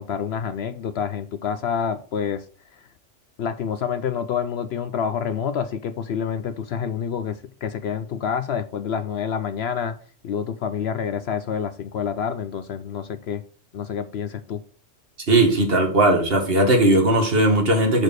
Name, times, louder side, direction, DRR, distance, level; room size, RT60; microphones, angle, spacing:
voice 1, 0.0-2.5 2.7-2.8 3.4-10.0 10.2-13.4 13.7-14.6, left 7 dB, 65° left, 0.7 m, -28 dB
voice 2, 15.3-18.0, right 1 dB, 50° right, 1.9 m, -18 dB
6.7 x 4.5 x 6.1 m
omnidirectional pair, 1.3 m